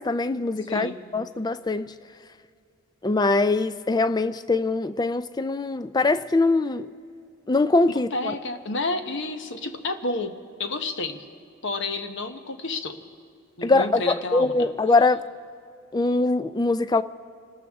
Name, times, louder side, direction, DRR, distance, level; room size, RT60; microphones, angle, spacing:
voice 1, 0.0-1.9 3.0-6.9 7.5-8.3 13.6-15.2 15.9-17.0, left 3 dB, 20° left, 0.4 m, -22 dB
voice 2, 0.7-1.0 7.9-11.2 11.6-13.0 13.6-14.5, left 2 dB, 60° left, 1.1 m, -30 dB
27.0 x 14.0 x 3.6 m
head